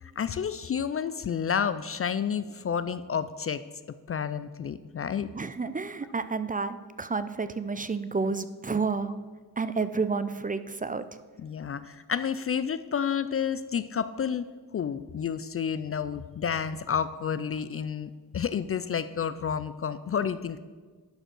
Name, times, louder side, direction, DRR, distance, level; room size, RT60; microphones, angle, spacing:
voice 1, 0.0-3.6 4.1-5.3 11.4-14.5 14.7-20.6, left 7 dB, 40° left, 13 dB, 0.4 m, -30 dB
voice 2, 5.3-9.1 9.6-11.0, right 4 dB, 20° right, 12 dB, 0.5 m, -30 dB
11.5 x 5.1 x 6.1 m, 1.4 s
cardioid pair, 60°, 38 cm